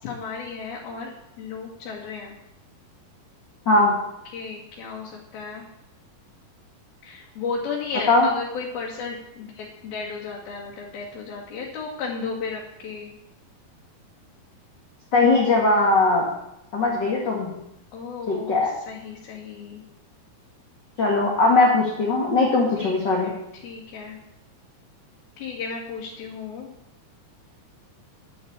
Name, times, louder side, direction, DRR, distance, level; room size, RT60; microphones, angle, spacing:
voice 1, 0.0-1.1 1.4-2.4 4.3-5.6 7.0-13.1 17.9-19.8 22.8-22.9 23.2-24.2 25.4-26.7, left 5 dB, 75° left, -3 dB, 3.8 m, -34 dB
voice 2, 15.1-16.2 16.7-17.5 18.3-18.7 21.0-23.3, left 3 dB, 35° left, -2 dB, 2.1 m, -19 dB
11.5 x 7.9 x 8.8 m, 0.85 s
omnidirectional pair, 4.4 m